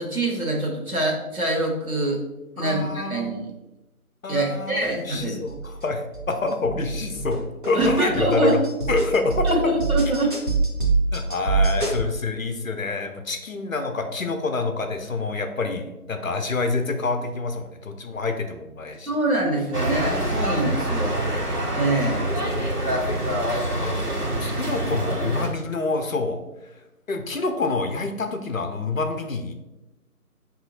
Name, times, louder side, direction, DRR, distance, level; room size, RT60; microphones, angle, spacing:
voice 1, 0.0-2.2 2.6-3.4 4.3-5.4 7.7-8.6 9.4-10.3 19.1-21.3 21.7-22.3, right 2 dB, 65° right, -1 dB, 1.2 m, -24 dB
voice 2, 2.6-3.4 4.2-7.4 7.7-8.6 8.9-9.5 11.1-19.1 22.1-22.3 23.0-23.2 23.6-24.1 24.4-26.4 27.1-29.5, left 3 dB, 60° left, 5 dB, 0.6 m, -27 dB
sound 1, 4.8-4.9 5.1-5.8 6.1-6.3 6.6-12.0, right 3 dB, 35° right, 0.8 m, -24 dB
sound 2, 19.7-25.5, right 1 dB, 90° right, 1.4 m, -25 dB
5.5 x 2.7 x 2.6 m, 1.0 s
figure-of-eight pair, 160°, 45 cm